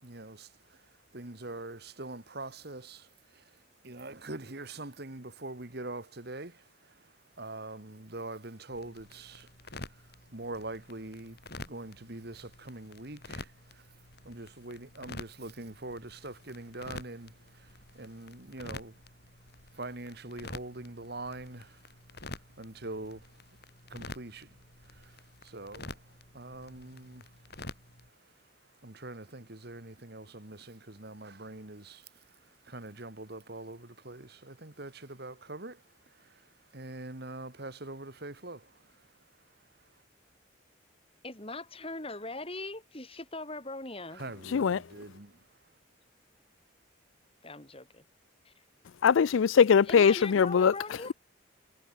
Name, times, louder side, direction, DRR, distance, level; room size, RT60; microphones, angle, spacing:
voice 1, 0.0-0.8 1.1-3.4 3.8-7.1 7.4-13.9 14.2-19.0 19.7-21.8 22.6-23.3 23.9-24.6 24.8-27.3 28.8-32.1 32.6-35.8 36.2-36.4 36.7-38.8 44.1-45.4, right 2 dB, 50° right, 1.9 m, -43 dB
sound 1, 8.7-28.1, left 2 dB, 50° left, 7.0 m, -48 dB
voice 2, 41.2-44.2 47.4-47.9 49.9-51.1, left 2 dB, 30° left, 3.7 m, -40 dB
voice 3, 44.4-44.9 49.0-51.1, left 6 dB, 75° left, 0.4 m, -22 dB
head